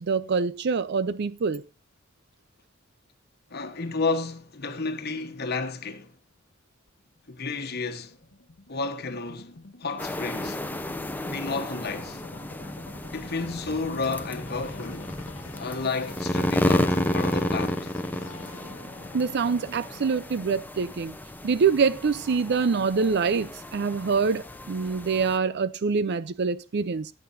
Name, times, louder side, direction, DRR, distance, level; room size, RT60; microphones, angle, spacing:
voice 1, 0.0-1.6 19.1-21.1 21.4-27.1, right 5 dB, 55° right, 0.5 m, -25 dB
voice 2, 3.5-6.1 7.3-8.2 8.7-9.5 9.8-10.6 11.2-12.2 13.1-15.1 15.6-17.9, left 3 dB, 55° left, 1.2 m, -31 dB
sound 1, 6.9-23.3, left 3 dB, 85° left, 1.6 m, -47 dB
sound 2, 10.0-25.4, left 1 dB, 10° left, 0.7 m, -32 dB
17.0 x 8.7 x 2.6 m
head